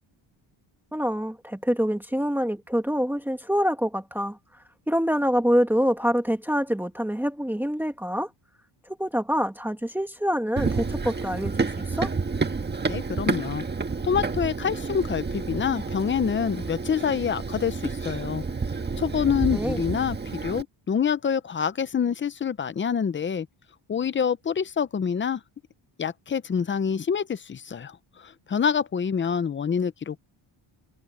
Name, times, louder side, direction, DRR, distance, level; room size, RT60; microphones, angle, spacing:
voice 1, 0.9-4.4 4.9-8.3 8.9-12.1 19.5-19.8, equal, 5° right, 1.3 m, -26 dB
Run, 10.6-20.6, right 4 dB, 20° right, 1.6 m, -30 dB
voice 2, 12.9-13.6 14.0-18.4 19.0-20.2 20.4-23.5 23.9-25.4 26.0-28.0 28.2-30.2, left 7 dB, 25° left, 0.6 m, -26 dB
wide cardioid pair, 175°, 48 cm